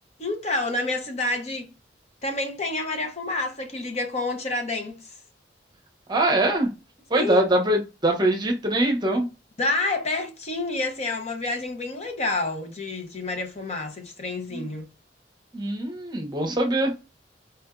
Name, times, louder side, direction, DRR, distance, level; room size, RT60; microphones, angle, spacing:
voice 1, 0.2-1.7 2.2-5.1 7.2-7.4 9.6-14.9, left 2 dB, 35° left, 0.8 m, -28 dB
voice 2, 6.1-6.7 7.1-9.3 14.5-14.7 15.5-16.9, right 1 dB, 25° right, 0.8 m, -23 dB
4.4 x 2.5 x 2.3 m
head